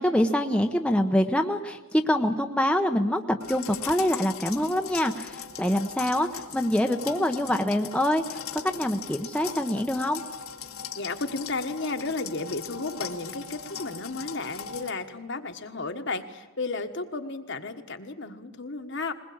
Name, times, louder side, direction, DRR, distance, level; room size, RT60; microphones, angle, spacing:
voice 1, 0.0-10.2, left 1 dB, 5° left, 4 dB, 0.8 m, -25 dB
sound 1, 3.4-14.9, left 8 dB, 80° left, 1.7 m, -39 dB
voice 2, 10.9-19.1, left 3 dB, 55° left, 7 dB, 1.5 m, -33 dB
21.5 x 20.5 x 8.6 m, 1.1 s
head